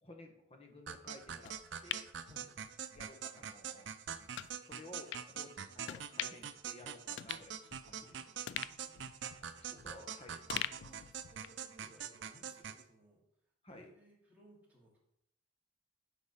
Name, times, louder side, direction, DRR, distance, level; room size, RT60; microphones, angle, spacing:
voice 1, 0.0-1.6 1.8-2.1 2.9-3.9 4.7-7.5 7.8-8.1 9.4-9.5 9.8-10.6 13.6-13.9, left 1 dB, 30° left, 4 dB, 1.3 m, -54 dB
sound 1, 0.9-12.8, right 8 dB, 70° right, 0.5 m, -44 dB
sound 2, 1.5-3.1 3.4-3.6 4.3-4.5 5.1-5.3 5.9-6.5 6.8-6.9 7.2-8.1 8.5-10.1 10.5-11.7 12.0-12.1, left 11 dB, 65° left, 0.3 m, -43 dB
voice 2, 2.2-2.5 7.9-10.0 10.7-13.2 13.7-15.0, right 1 dB, 10° right, -6 dB, 2.8 m, -63 dB
9.9 x 4.1 x 5.6 m, 0.76 s
head